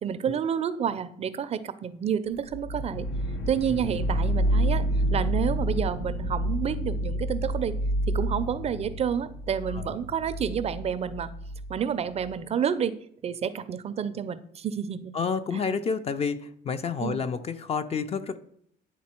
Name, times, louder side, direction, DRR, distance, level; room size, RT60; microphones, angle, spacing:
voice 1, 0.0-3.1 3.5-7.7 8.1-11.3 11.7-12.9 13.2-15.1 15.5-15.6 17.0-17.2, right 8 dB, 40° right, 13 dB, 0.4 m, -29 dB
sound 1, 2.5-12.3, equal, 80° left, 1.0 m, -29 dB
voice 2, 15.1-18.4, left 5 dB, 35° left, 11 dB, 0.5 m, -29 dB
9.4 x 3.7 x 4.3 m, 0.68 s
cardioid pair, 110°, 17 cm